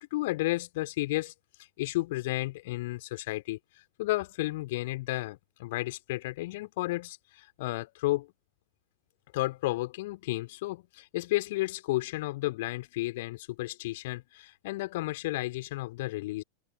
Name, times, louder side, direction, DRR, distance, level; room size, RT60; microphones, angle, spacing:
voice 1, 0.0-1.3 1.8-3.6 4.0-8.3 9.3-16.4, left 19 dB, 50° left, 3.9 m, -32 dB
open air
figure-of-eight pair, 90°, 0 cm